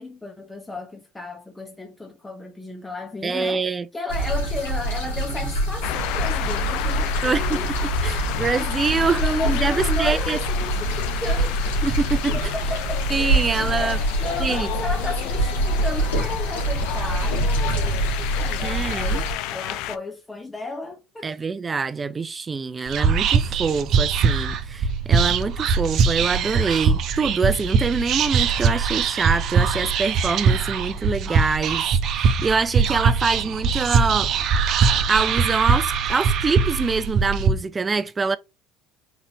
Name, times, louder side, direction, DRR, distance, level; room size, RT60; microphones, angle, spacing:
voice 1, 0.0-7.7 8.2-8.7 9.0-11.6 12.3-13.1 13.8-21.3 22.8-22.9, left 2 dB, 15° left, 1.0 m, -34 dB
voice 2, 3.2-3.9 7.2-7.6 8.0-10.4 11.8-12.5 13.1-14.0 14.4-14.7 18.6-19.2 21.2-31.8 32.1-34.3 35.1-38.4, right 4 dB, 25° right, 0.4 m, -25 dB
sound 1, 4.1-19.3, right 1 dB, 85° left, 2.7 m, -25 dB
sound 2, 5.8-20.0, left 13 dB, 70° left, 0.5 m, -31 dB
Whispering, 22.9-37.5, right 5 dB, 55° right, 0.8 m, -21 dB
4.5 x 4.0 x 2.9 m
hypercardioid pair, 75°, 0 cm